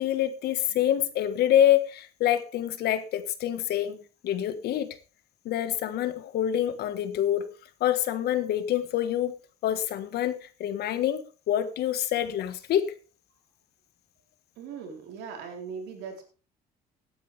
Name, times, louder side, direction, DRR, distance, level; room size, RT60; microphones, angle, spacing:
voice 1, 0.0-4.0 4.2-5.0 5.4-7.5 7.8-9.3 9.6-12.9, left 11 dB, 70° left, 12 dB, 1.5 m, -26 dB
voice 2, 14.6-16.2, right 6 dB, 90° right, 3 dB, 4.3 m, -39 dB
17.5 x 9.7 x 3.5 m, 0.34 s
cardioid pair, 110°, 17 cm